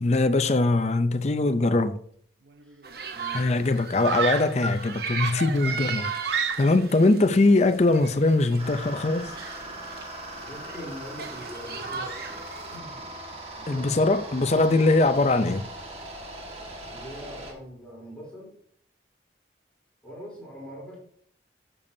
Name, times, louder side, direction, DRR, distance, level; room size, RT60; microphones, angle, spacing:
voice 1, 0.0-2.0 3.3-9.3 13.7-15.7, left 2 dB, 40° left, 0.5 m, -22 dB
Screaming, 2.5-2.9 4.0-4.6 5.2-6.9, right 6 dB, 80° right, 0.7 m, -30 dB
voice 2, 2.6-3.5 10.4-12.2 12.7-13.1 13.6-14.0 16.9-18.6 20.0-21.0, equal, 5° left, 3.5 m, -42 dB
sound 1, 2.8-12.8, right 5 dB, 60° right, 1.0 m, -37 dB
sound 2, 8.6-17.5, right 1 dB, 35° right, 1.7 m, -40 dB
12.5 x 6.9 x 2.7 m
head